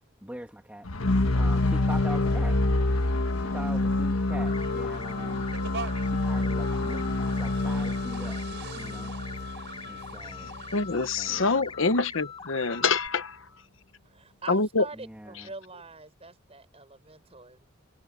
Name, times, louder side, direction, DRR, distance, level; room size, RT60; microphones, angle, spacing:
voice 1, 0.2-0.9 1.3-2.6 3.3-8.4 8.7-9.2 9.9-10.5 10.9-11.5 14.9-15.5, right 1 dB, 5° right, 1.9 m, -42 dB
sound 1, 0.9-10.9, left 2 dB, 90° left, 1.5 m, -27 dB
sound 2, 1.1-11.1, right 4 dB, 60° right, 5.2 m, -46 dB
sound 3, 4.3-13.1, left 5 dB, 25° left, 3.7 m, -43 dB
voice 2, 10.4-13.4 14.5-14.8, left 4 dB, 65° left, 1.0 m, -26 dB
voice 3, 14.0-17.7, right 3 dB, 30° right, 6.5 m, -44 dB
head